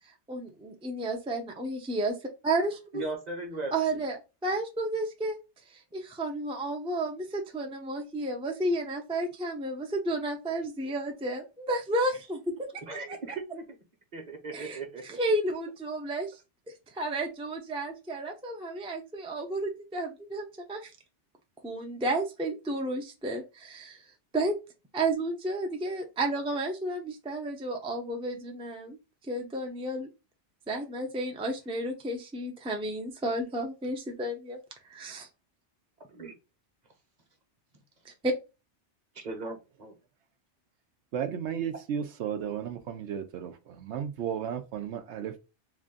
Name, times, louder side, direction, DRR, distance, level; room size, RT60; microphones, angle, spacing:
voice 1, 0.3-2.1 2.4-2.8 3.7-5.4 5.7-12.7 14.5-16.4 16.9-20.9 21.6-24.0 24.3-24.5 24.9-29.0 29.2-30.1 30.7-34.6 34.9-35.3, right 1 dB, 5° right, 0.5 m, -32 dB
voice 2, 2.9-4.1 12.9-13.6 14.1-15.2 36.1-36.3 39.1-39.9, right 3 dB, 40° right, 1.1 m, -38 dB
voice 3, 41.1-45.4, right 8 dB, 75° right, 0.9 m, -34 dB
3.3 x 2.5 x 3.6 m
omnidirectional pair, 1.2 m